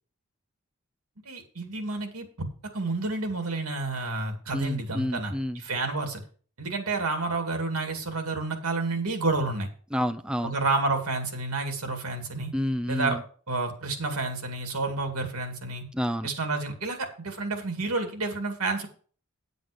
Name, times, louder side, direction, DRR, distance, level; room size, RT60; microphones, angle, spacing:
voice 1, 1.3-2.3 2.7-6.2 6.6-9.7 10.4-12.5 12.9-13.2 13.5-15.8 16.2-18.9, right 3 dB, 90° right, 5 dB, 2.3 m, -30 dB
voice 2, 4.5-5.6 9.9-10.5 12.5-13.2 15.9-16.3, equal, 5° right, 10 dB, 0.4 m, -29 dB
9.6 x 7.9 x 5.0 m, 0.43 s
head